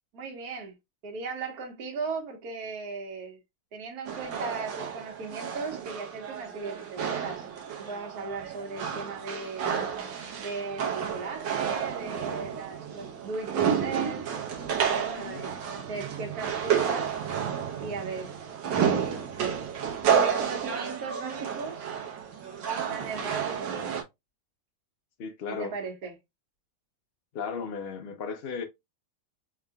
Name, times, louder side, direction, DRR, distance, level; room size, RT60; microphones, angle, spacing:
voice 1, 0.1-0.7 1.0-3.4 3.7-7.5 7.8-9.7 10.4-14.3 14.8-17.1 17.8-18.3 18.8-19.3 20.1-22.1 22.7-23.9 25.5-26.1, right 4 dB, 55° right, 1.7 m, -37 dB
sound 1, 4.1-24.0, right 7 dB, 85° right, 1.6 m, -31 dB
voice 2, 15.1-15.4 25.2-25.7 27.3-28.6, left 5 dB, 75° left, 0.5 m, -35 dB
4.7 x 3.3 x 2.2 m
omnidirectional pair, 2.0 m